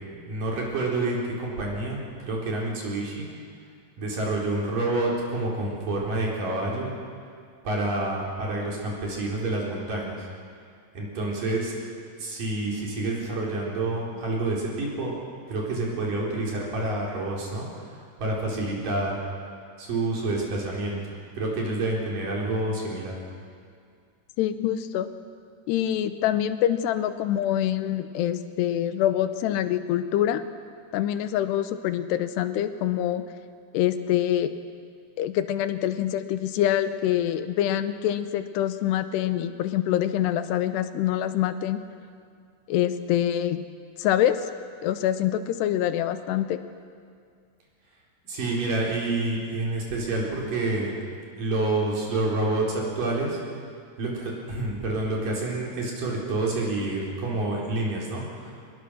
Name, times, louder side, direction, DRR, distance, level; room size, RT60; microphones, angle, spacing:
voice 1, 0.1-3.3 4.0-6.9 7.6-10.3 11.0-11.7 12.2-15.1 15.5-19.2 19.8-21.0 21.3-23.2 48.3-50.9 51.4-53.4 54.0-58.5, right 2 dB, 50° right, -3 dB, 5.4 m, -28 dB
voice 2, 24.4-25.1 25.7-30.4 30.9-33.2 33.7-34.5 35.2-41.8 42.7-43.6 44.0-44.4 44.8-46.6, left 11 dB, 80° left, 11 dB, 2.9 m, -25 dB
25.0 x 20.5 x 6.3 m, 2.2 s
omnidirectional pair, 4.9 m